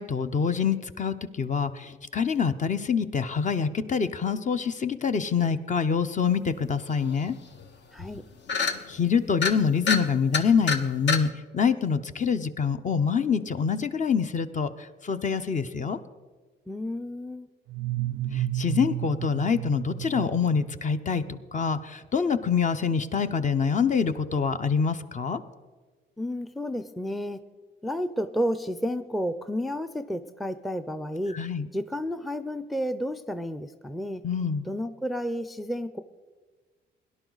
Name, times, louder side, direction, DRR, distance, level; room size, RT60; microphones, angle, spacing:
voice 1, 0.0-7.4 8.9-11.3 11.5-16.0 18.3-21.2 21.5-25.4 31.3-31.7 34.2-34.6, left 6 dB, 40° left, 10 dB, 0.8 m, -26 dB
sound 1, 7.2-7.3 7.6-7.7 8.0-8.2 8.5-8.8 9.3-9.5 9.9-10.0 10.3-10.8 11.1-11.2, left 5 dB, 65° left, 1.1 m, -25 dB
voice 2, 7.9-8.2 16.7-17.5 26.2-27.4 27.8-31.4 31.7-34.2 34.7-36.0, equal, ahead, 11 dB, 0.5 m, -31 dB
sound 2, 17.7-21.4, right 13 dB, 85° right, 0.4 m, -32 dB
18.0 x 11.0 x 4.0 m, 1.4 s
cardioid pair, 90°, 20 cm